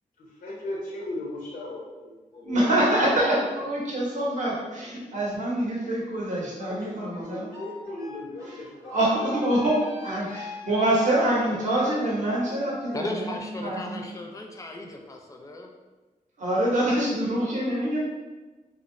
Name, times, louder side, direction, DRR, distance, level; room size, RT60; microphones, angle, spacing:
voice 1, 0.4-2.7 6.6-9.1, left 1 dB, 90° left, -4 dB, 0.5 m, -37 dB
voice 2, 2.4-7.5 8.5-8.6 8.9-9.8 10.0-14.0 16.4-18.0, right 1 dB, 55° right, -5 dB, 0.7 m, -25 dB
sound 1, 7.2-13.4, equal, 20° right, 0.8 m, -41 dB
voice 3, 12.9-15.7, left 1 dB, 20° left, 1 dB, 0.4 m, -36 dB
2.6 x 2.0 x 2.5 m, 1.2 s
cardioid pair, 65°, 15 cm